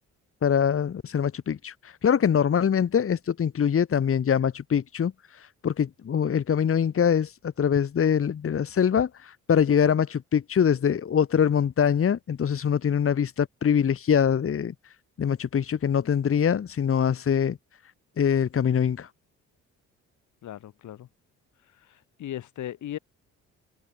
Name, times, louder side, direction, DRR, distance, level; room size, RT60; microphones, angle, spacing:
voice 1, 0.4-17.6 18.2-19.1, left 8 dB, 45° left, 2.0 m, -24 dB
voice 2, 20.4-21.1 21.7-23.0, left 12 dB, 75° left, 5.3 m, -37 dB
cardioid pair, 90°, 30 cm